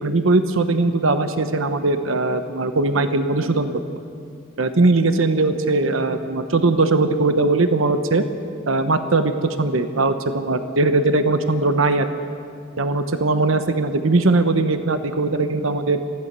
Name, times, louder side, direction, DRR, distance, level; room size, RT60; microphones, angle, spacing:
voice 1, 0.0-3.7 4.6-8.2 8.7-12.1 12.8-16.0, right 3 dB, 75° right, 9 dB, 1.0 m, -20 dB
24.0 x 16.0 x 6.8 m, 2.3 s
head